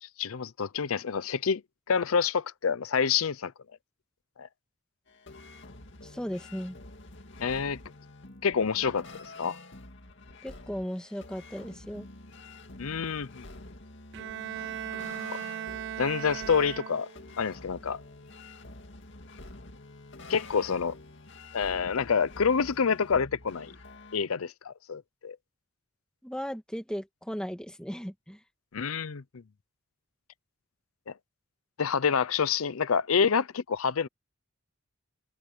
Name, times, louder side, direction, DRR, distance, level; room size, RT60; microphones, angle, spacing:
voice 1, 0.0-1.6 1.9-3.5 4.4-4.5 7.4-7.8 8.4-9.1 9.4-9.6 12.8-13.4 15.3-15.4 16.0-17.1 17.4-18.0 20.3-21.0 21.5-23.7 24.1-25.4 28.7-29.4 31.1-31.2 31.8-34.1, left 6 dB, 90° left, 0.6 m, -27 dB
sound 1, 5.1-24.2, left 2 dB, 60° left, 2.2 m, -48 dB
voice 2, 6.0-6.8 10.4-12.1 26.2-28.4, equal, 5° left, 1.9 m, -36 dB
Bowed string instrument, 14.1-17.4, right 10 dB, 60° right, 0.3 m, -38 dB
head